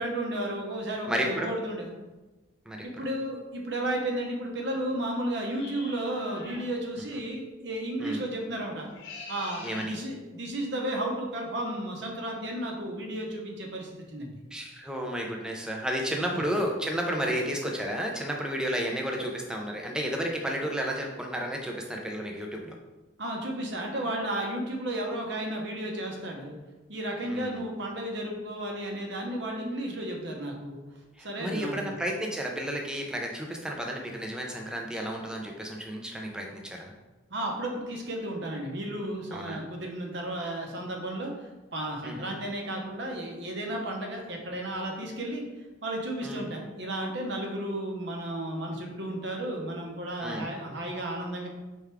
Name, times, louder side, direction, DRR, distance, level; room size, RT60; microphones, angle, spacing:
voice 1, 0.0-1.9 2.8-8.9 9.3-14.3 16.2-16.4 17.2-17.3 23.2-26.6 26.9-30.8 31.2-31.9 37.3-41.3 41.7-45.4 45.8-51.5, right 1 dB, 60° right, 1 dB, 0.8 m, -33 dB
voice 2, 1.0-1.5 2.7-2.9 8.0-8.2 9.6-10.0 14.5-22.8 27.3-27.6 31.2-36.9 39.3-39.6 42.0-42.4 46.2-46.4 50.2-50.5, equal, 5° right, 0 dB, 0.4 m, -32 dB
sound 1, 5.5-6.7 8.8-10.0, left 2 dB, 65° left, 0.9 m, -44 dB
4.5 x 3.5 x 3.4 m, 1.2 s
head